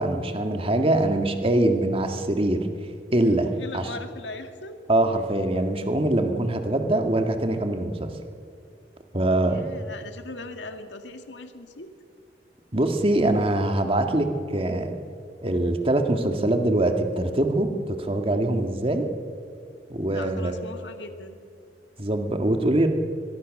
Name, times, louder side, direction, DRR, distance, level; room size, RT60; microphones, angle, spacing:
voice 1, 0.0-2.7 3.1-3.9 4.9-8.1 9.1-9.7 12.7-14.9 15.4-17.7 18.0-19.1 19.9-20.6 22.0-22.9, right 1 dB, 30° right, 5 dB, 1.8 m, -23 dB
voice 2, 3.5-4.8 9.4-11.9 20.1-21.4, left 2 dB, 85° left, 7 dB, 1.9 m, -39 dB
23.5 x 22.0 x 6.5 m, 2.3 s
head